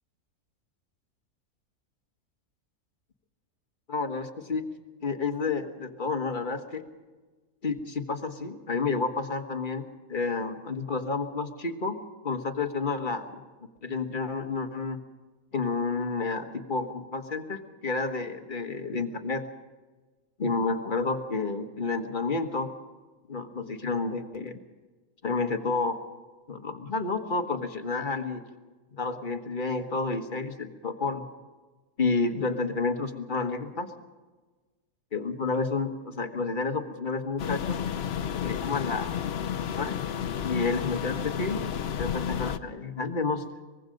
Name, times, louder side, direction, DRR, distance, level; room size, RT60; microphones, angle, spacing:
voice 1, 3.9-4.7 5.0-6.9 7.6-12.0 12.2-13.4 13.8-15.0 15.5-19.4 20.4-22.7 23.3-24.6 25.2-26.0 26.5-28.4 28.9-31.2 32.0-33.9 35.1-37.8 38.4-39.1 39.7-40.0 40.4-41.6 42.0-43.4, left 3 dB, 35° left, 5 dB, 1.5 m, -30 dB
sound 1, 37.4-42.6, left 8 dB, 55° left, 0.9 m, -31 dB
23.5 x 21.0 x 5.3 m, 1.3 s
omnidirectional pair, 1.5 m